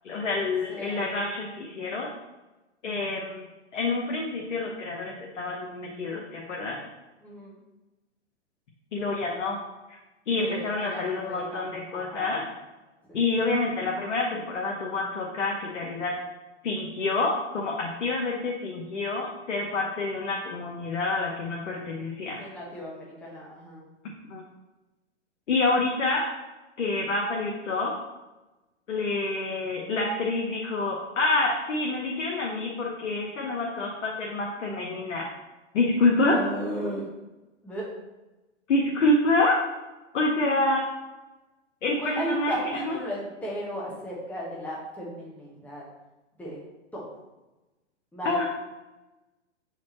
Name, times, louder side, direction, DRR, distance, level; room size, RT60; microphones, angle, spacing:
voice 1, 0.0-2.1 2.8-3.5 3.7-6.8 8.9-9.6 9.9-10.0 10.3-12.4 13.1-16.1 16.6-22.4 24.3-24.4 25.5-26.3 26.8-27.9 28.9-35.3 35.7-36.4 38.7-39.6 40.1-40.9 41.8-42.6 42.9-43.0 48.2-48.4, left 2 dB, 80° left, -1 dB, 1.1 m, -27 dB
voice 2, 0.7-1.2 7.2-7.6 10.4-12.5 13.1-13.2 22.4-23.9 36.3-37.1 37.6-37.9 41.9-45.9 46.4-46.6 46.9-47.2 48.1-48.4, equal, 5° left, -5 dB, 1.3 m, -35 dB
7.2 x 4.2 x 3.1 m, 1.1 s
hypercardioid pair, 120°, 36 cm